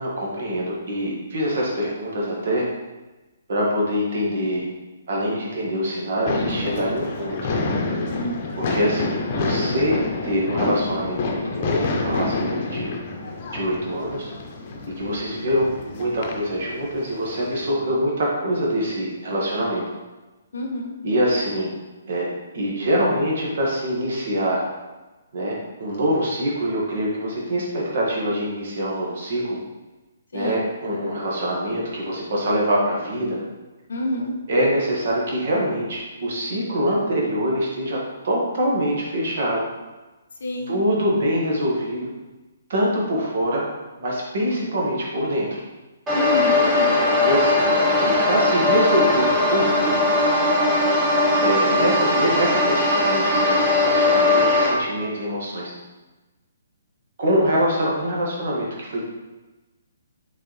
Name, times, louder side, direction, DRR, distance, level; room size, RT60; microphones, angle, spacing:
voice 1, 0.0-2.6 3.5-4.7 5.1-7.4 8.6-9.9 10.2-12.9 13.5-14.3 15.0-19.8 21.0-21.7 22.1-22.3 22.5-24.6 25.3-29.6 30.3-33.4 34.5-38.0 38.2-39.6 40.7-42.1 42.7-43.7 44.0-45.6 46.8-50.2 51.4-55.7 57.2-59.0, equal, 50° right, -3 dB, 1.8 m, -24 dB
sound 1, 6.3-17.6, left 3 dB, 35° left, 0.9 m, -28 dB
voice 2, 8.1-8.5 15.1-15.4 20.5-20.9 30.3-30.7 33.9-34.3 40.4-40.8 46.1-47.0, left 1 dB, 60° left, 1 dB, 0.9 m, -28 dB
sound 2, 46.1-54.7, left 2 dB, 20° right, 1.7 m, -19 dB
6.5 x 4.4 x 3.3 m, 1.1 s
figure-of-eight pair, 130°, 0 cm